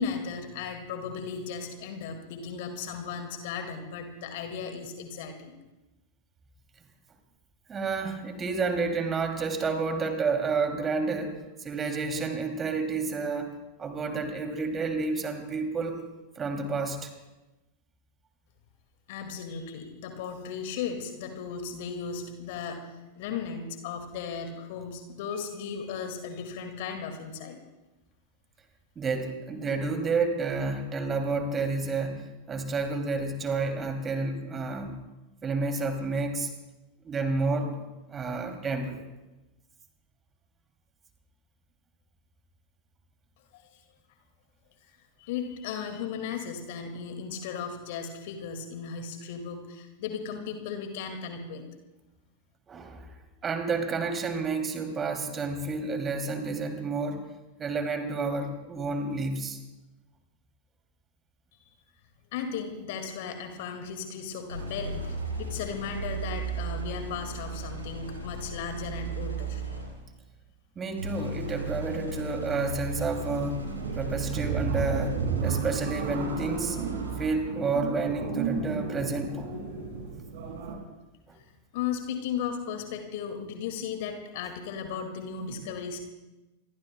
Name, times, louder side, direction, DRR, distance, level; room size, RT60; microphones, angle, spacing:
voice 1, 0.0-5.5 19.1-27.6 43.5-43.7 45.2-51.6 61.6-61.7 62.3-69.6 81.7-86.0, left 6 dB, 50° left, 6 dB, 2.1 m, -36 dB
voice 2, 7.7-13.5 13.8-16.0 16.4-17.1 29.0-34.9 35.4-36.5 37.0-37.7 38.1-39.0 52.7-53.1 53.4-57.2 57.6-59.6 70.8-73.6 73.9-76.8 77.2-79.5 85.5-85.6, right 4 dB, 20° right, 5 dB, 2.8 m, -30 dB
sound 1, 64.5-70.1 71.0-77.4, right 3 dB, 80° right, 5.1 m, -36 dB
sound 2, 73.3-80.8, right 5 dB, 55° right, 6.1 m, -33 dB
27.0 x 23.0 x 2.3 m, 1.0 s
figure-of-eight pair, 90°, 0 cm